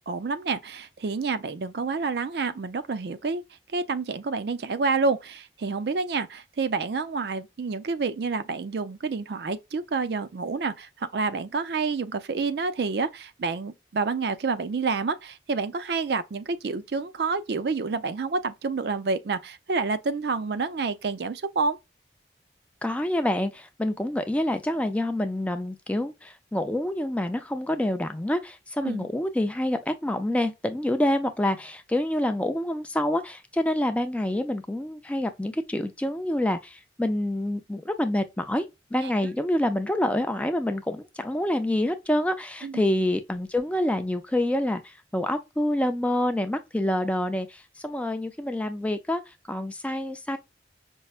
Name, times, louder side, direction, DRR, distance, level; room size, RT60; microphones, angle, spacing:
voice 1, 0.0-3.4 3.7-21.8 28.8-29.1 39.0-39.1 42.6-42.9, right 4 dB, 65° right, 0.4 m, -28 dB
voice 2, 22.8-50.4, left 1 dB, 5° left, 0.3 m, -27 dB
5.3 x 2.1 x 2.3 m
head